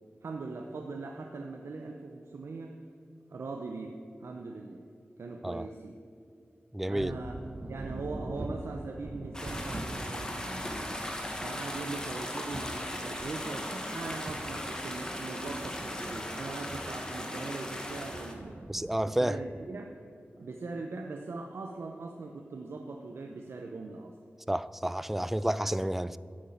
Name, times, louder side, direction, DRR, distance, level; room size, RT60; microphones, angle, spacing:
voice 1, 0.2-2.8 3.3-3.9 4.2-4.8 5.2-6.0 6.9-7.4 7.7-10.9 11.4-18.6 19.0-19.9 20.4-24.2, right 3 dB, 80° right, 0.8 m, -40 dB
voice 2, 6.7-7.1 18.7-19.4 24.5-26.2, right 1 dB, 5° right, 0.3 m, -30 dB
sound 1, 7.0-19.7, right 1 dB, 40° right, 0.8 m, -44 dB
sound 2, 9.3-18.3, left 1 dB, 15° left, 1.5 m, -38 dB
11.0 x 8.2 x 7.8 m
wide cardioid pair, 110°, 4 cm